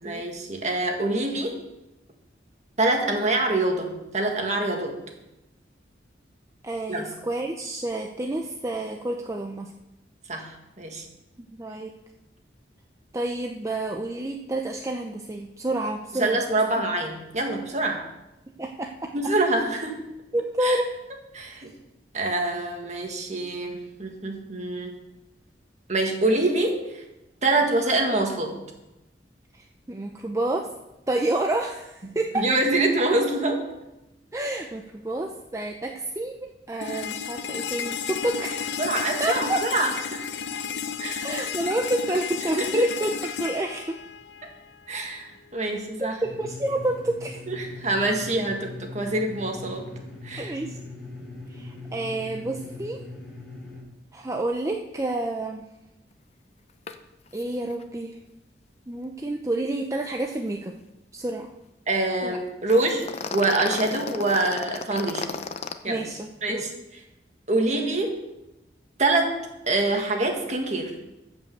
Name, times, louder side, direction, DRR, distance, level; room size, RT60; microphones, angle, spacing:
voice 1, 0.0-1.6 2.8-5.0 6.9-7.1 10.3-11.1 16.2-18.0 19.1-20.0 20.6-20.8 21.3-21.7 22.1-24.9 25.9-27.0 27.4-28.6 32.3-33.7 38.8-40.2 41.0-41.3 42.5-42.9 44.9-46.2 47.5-49.9 50.2-50.5 61.9-63.1 63.3-65.3 65.8-66.1 66.4-66.7 67.5-68.1 69.0-69.4 69.7-71.0, right 2 dB, 40° right, 2 dB, 1.8 m, -25 dB
voice 2, 6.6-9.7 11.5-11.9 13.1-16.4 16.8-16.9 18.6-19.1 20.3-20.9 29.5-30.7 31.1-32.5 34.3-38.8 39.2-39.6 41.2-43.1 43.4-44.0 46.0-47.4 50.4-50.8 51.5-53.0 54.1-55.6 57.3-58.2 58.9-60.7 61.1-61.5 62.2-62.4 65.9-66.6, right 2 dB, 15° right, 2 dB, 0.6 m, -29 dB
sound 1, 36.8-44.8, left 7 dB, 80° left, 0.7 m, -32 dB
sound 2, 46.2-53.8, left 2 dB, ahead, 4.5 m, -40 dB
sound 3, 56.9-57.0 57.3-57.4 57.7-57.8 62.7-65.7, left 4 dB, 35° left, 0.6 m, -33 dB
14.5 x 5.4 x 6.7 m, 0.96 s
head